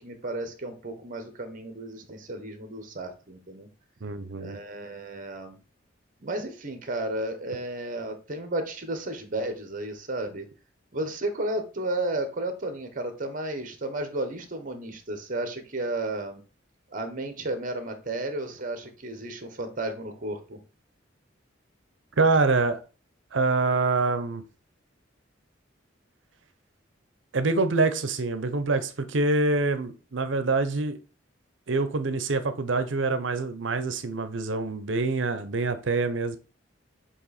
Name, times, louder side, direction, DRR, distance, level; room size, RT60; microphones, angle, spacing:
voice 1, 0.0-3.7 4.3-5.6 6.2-10.5 10.9-16.4 16.9-20.6, right 1 dB, 45° right, 1.1 m, -33 dB
voice 2, 4.0-4.6 22.2-22.8 23.3-24.4 27.3-31.0 31.7-36.4, right 3 dB, 70° right, 0.7 m, -25 dB
7.5 x 3.0 x 4.2 m
head